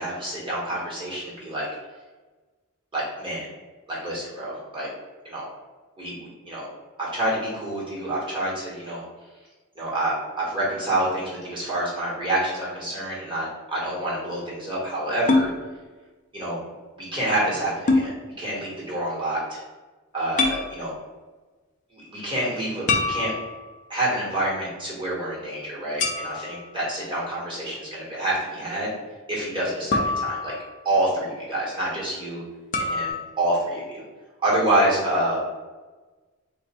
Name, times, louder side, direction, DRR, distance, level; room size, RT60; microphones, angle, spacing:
voice 1, 0.0-1.7 2.9-3.5 3.9-4.9 5.2-5.5 6.0-6.1 6.4-6.7 7.0-9.0 9.7-15.5 16.3-16.6 17.0-18.1 18.4-19.6 20.1-20.9 21.9-23.3 23.9-28.9 29.3-30.5 30.8-32.4 32.8-34.0 34.4-35.4, right 1 dB, 25° right, -6 dB, 1.4 m, -27 dB
sound 1, 15.3-15.5 17.9-18.1 20.4-20.6 22.9-23.8 26.0-26.6 29.9-30.8 32.7-33.1, left 3 dB, 35° left, 0.5 m, -24 dB
3.1 x 2.5 x 4.3 m, 1.3 s
head